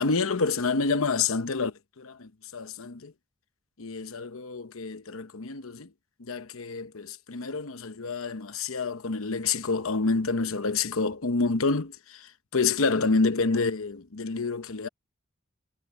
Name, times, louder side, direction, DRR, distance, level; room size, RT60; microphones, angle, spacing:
voice 1, 0.0-3.1 3.8-5.9 6.2-14.9, left 4 dB, 85° left, 0.9 m, -28 dB
head